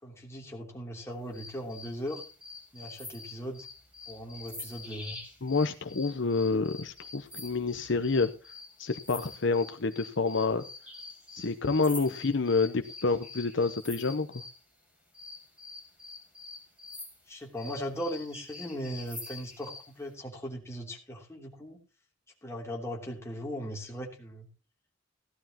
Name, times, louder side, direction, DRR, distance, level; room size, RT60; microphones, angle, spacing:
voice 1, 0.0-2.2 2.7-3.7 4.1-5.2 17.3-21.8 22.4-24.5, equal, 15° left, -1 dB, 3.1 m, -38 dB
sound 1, 1.3-14.6 15.1-19.9, left 3 dB, 5° right, 7.5 m, -46 dB
voice 2, 5.4-8.3 8.8-10.6 11.3-14.4, left 4 dB, 65° left, 8 dB, 0.8 m, -28 dB
16.5 x 11.5 x 2.9 m, 0.32 s
head